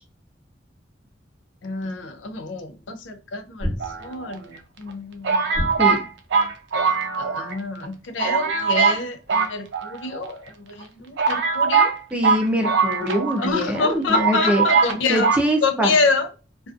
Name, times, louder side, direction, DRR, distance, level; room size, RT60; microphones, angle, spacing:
voice 1, 1.6-4.4 4.8-5.4 7.1-11.9 13.4-15.3 15.6-16.3, left 3 dB, 90° left, 0.4 m, -26 dB
sound 1, 3.6-4.4 5.5-6.3, equal, 20° left, 0.9 m, -29 dB
sound 2, 3.8-4.6 5.2-7.5 7.8-7.9 8.2-9.0 9.3-10.3 10.8-10.9 11.2-13.5 13.7-13.8 14.1-14.9 15.2-15.4, right 5 dB, 70° right, 0.4 m, -21 dB
voice 2, 12.1-14.6 15.1-16.0, equal, 5° right, 0.4 m, -23 dB
2.4 x 2.3 x 2.3 m
head